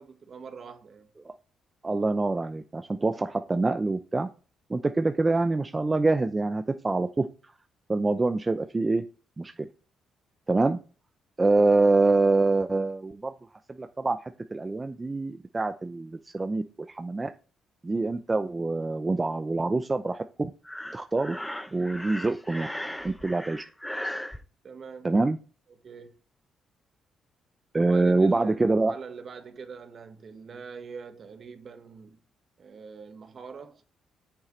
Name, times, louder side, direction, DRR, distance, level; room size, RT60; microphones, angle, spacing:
voice 1, 0.0-1.1 24.6-25.1 25.7-26.1 27.8-32.2 32.6-33.8, right 5 dB, 50° right, 1.5 m, -43 dB
voice 2, 1.8-4.3 4.7-7.3 7.9-9.0 9.4-9.7 10.5-10.8 11.4-13.3 13.8-17.3 17.8-20.5 20.9-21.4 21.7-22.7 23.0-23.6 25.0-25.4 27.7-28.9, right 3 dB, 20° right, 0.6 m, -25 dB
Breathing, 20.6-24.4, left 1 dB, 5° left, 0.9 m, -37 dB
8.9 x 7.1 x 3.2 m
cardioid pair, 90°, 0 cm